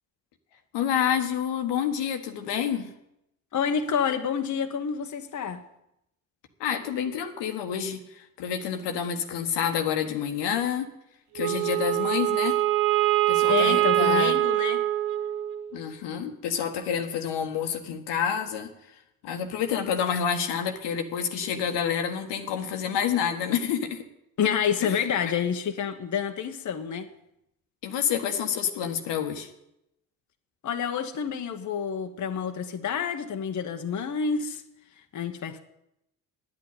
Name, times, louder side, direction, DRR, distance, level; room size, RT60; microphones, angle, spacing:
voice 1, 0.7-2.9 6.6-10.9 11.3-12.6 13.3-14.3 15.7-18.7 19.2-24.0 24.8-24.9 27.8-29.5, left 8 dB, 70° left, 5 dB, 1.4 m, -28 dB
voice 2, 3.5-5.6 13.5-14.8 24.4-27.1 30.6-34.6 35.0-35.6, left 7 dB, 40° left, 6 dB, 1.1 m, -28 dB
Wind instrument woodwind instrument, 11.4-15.8, right 14 dB, 60° right, 1.3 m, -24 dB
9.5 x 8.8 x 9.4 m, 0.83 s
hypercardioid pair, 50°, 44 cm